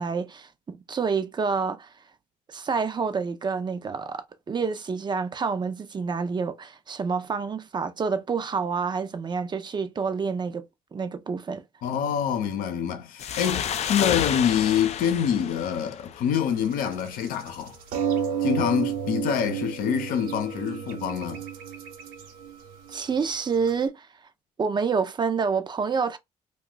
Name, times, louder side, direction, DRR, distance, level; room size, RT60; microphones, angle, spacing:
voice 1, 0.0-1.9 2.5-10.7 10.9-11.6 22.9-24.1 24.6-26.2, right 5 dB, 30° right, 0.5 m, -28 dB
voice 2, 11.8-17.8 18.4-21.5, left 8 dB, 75° left, 0.7 m, -26 dB
sound 1, 13.2-16.6, left 9 dB, 45° left, 0.4 m, -30 dB
sound 2, 16.6-23.8, right 8 dB, 80° right, 0.9 m, -31 dB
2.4 x 2.4 x 3.8 m
cardioid pair, 85°, 15 cm